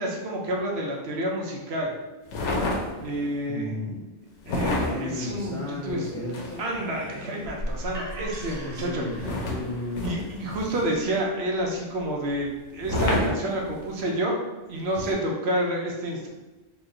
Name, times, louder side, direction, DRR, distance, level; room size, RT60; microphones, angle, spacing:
voice 1, 0.0-1.9 3.0-3.7 4.5-6.1 6.6-9.0 10.0-14.4 14.7-16.3, right 1 dB, 65° right, -1 dB, 0.9 m, -29 dB
sound 1, 2.3-3.3 4.4-6.8 9.2-11.1 12.8-14.0 15.0-15.1, left 1 dB, 85° left, 1.0 m, -29 dB
voice 2, 3.5-4.0 4.7-6.5 8.7-10.0, left 1 dB, 5° left, -5 dB, 0.3 m, -34 dB
sound 2, 5.8-8.5 8.8-9.0, left 1 dB, 60° left, 0.7 m, -43 dB
sound 3, 7.4-13.2, equal, 90° right, 1.1 m, -40 dB
2.9 x 2.2 x 3.6 m, 1.1 s
omnidirectional pair, 1.2 m